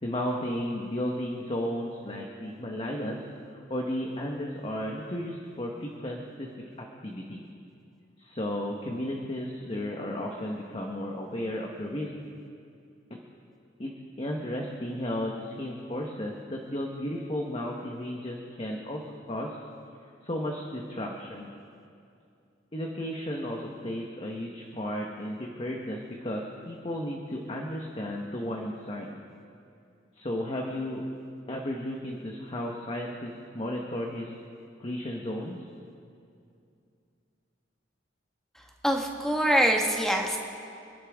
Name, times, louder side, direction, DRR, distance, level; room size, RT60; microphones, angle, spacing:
voice 1, 0.0-3.2 3.5-6.5 6.8-7.5 8.2-12.1 13.1-13.2 13.8-19.6 20.2-21.5 22.7-29.2 30.2-31.0 31.5-34.3 34.8-35.6, left 1 dB, 30° left, 0 dB, 1.1 m, -34 dB
voice 2, 38.5-40.4, equal, 5° left, 1 dB, 1.4 m, -25 dB
27.0 x 11.0 x 3.6 m, 2.5 s
head